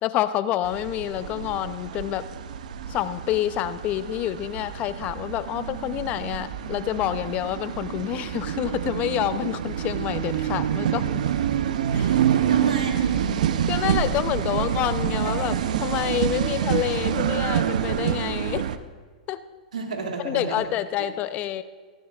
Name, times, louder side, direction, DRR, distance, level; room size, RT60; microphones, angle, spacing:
voice 1, 0.0-2.3 2.9-11.2 11.9-12.2 13.7-18.7 19.3-19.4 20.2-21.6, left 12 dB, 35° left, 13 dB, 0.6 m, -28 dB
sound 1, 0.6-18.8, right 9 dB, 75° right, 0.6 m, -27 dB
voice 2, 12.5-13.5 14.5-14.6 15.3-15.7 16.1-16.2 19.7-20.6, right 4 dB, 90° right, 1 dB, 2.4 m, -31 dB
17.5 x 15.0 x 2.4 m, 1.5 s
hypercardioid pair, 120°, 4 cm